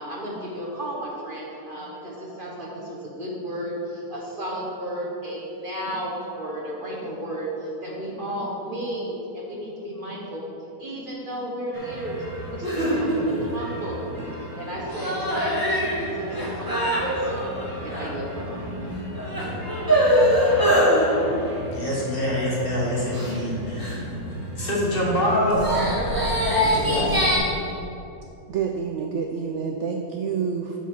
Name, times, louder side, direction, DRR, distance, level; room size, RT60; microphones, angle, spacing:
voice 1, 0.0-10.4 10.8-12.2 12.5-14.0 14.6-17.5 17.8-18.7, right 1 dB, 35° right, -4 dB, 1.2 m, -33 dB
sound 1, 11.7-27.4, equal, 15° right, 1.4 m, -25 dB
voice 2, 21.7-24.0 24.6-25.7 26.6-27.4, left 1 dB, 35° left, -5 dB, 1.6 m, -25 dB
voice 3, 28.5-30.8, right 6 dB, 75° right, 3 dB, 0.6 m, -28 dB
8.0 x 4.8 x 5.9 m, 2.8 s
omnidirectional pair, 1.7 m